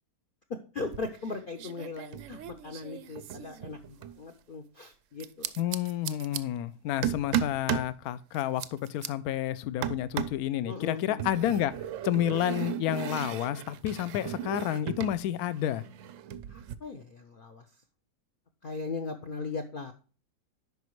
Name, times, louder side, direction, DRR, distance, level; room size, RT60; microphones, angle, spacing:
voice 1, 0.7-5.5 10.6-11.2 16.5-17.7 18.6-19.9, left 4 dB, 55° left, 5 dB, 0.5 m, -38 dB
sound 1, 0.8-1.3 1.6-4.2 5.2-6.4 7.0-7.9 8.3-9.1 9.8-10.5 11.2-15.2 15.5-16.7, right 10 dB, 70° right, 0.7 m, -36 dB
voice 2, 5.6-11.7 12.0-15.8, left 12 dB, 70° left, 17 dB, 1.0 m, -30 dB
9.3 x 5.4 x 3.1 m, 0.37 s
omnidirectional pair, 1.8 m